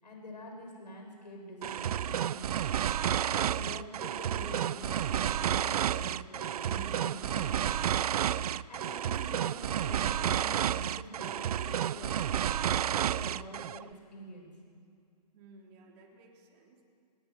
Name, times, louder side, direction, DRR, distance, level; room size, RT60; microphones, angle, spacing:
voice 1, 0.0-8.2 8.7-14.5, left 1 dB, 90° left, 1 dB, 7.4 m, -47 dB
sound 1, 1.6-13.8, right 10 dB, 65° right, 0.5 m, -31 dB
voice 2, 15.3-16.8, right 2 dB, 35° right, -1 dB, 3.7 m, -57 dB
19.5 x 18.5 x 8.3 m, 2.3 s
hypercardioid pair, 145°, 21 cm